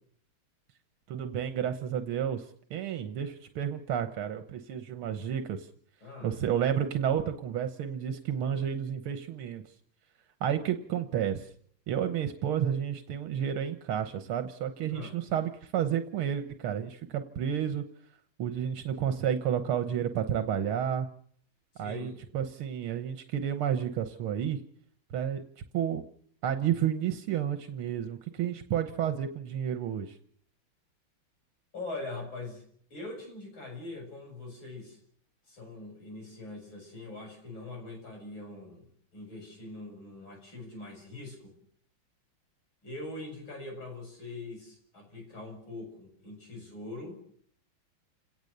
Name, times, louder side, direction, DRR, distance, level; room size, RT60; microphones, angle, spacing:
voice 1, 1.1-5.7 6.2-9.6 10.4-11.5 11.9-17.8 18.4-21.1 21.8-24.6 25.1-25.4 25.7-26.0 26.4-30.2, right 9 dB, 85° right, 8 dB, 2.0 m, -31 dB
voice 2, 6.0-6.3 14.9-15.2 21.8-22.2 31.7-32.6 32.9-35.0 35.5-38.8 39.1-41.5 42.8-47.2, left 2 dB, 65° left, 2 dB, 8.2 m, -42 dB
29.0 x 18.0 x 6.7 m, 0.62 s
omnidirectional pair, 2.3 m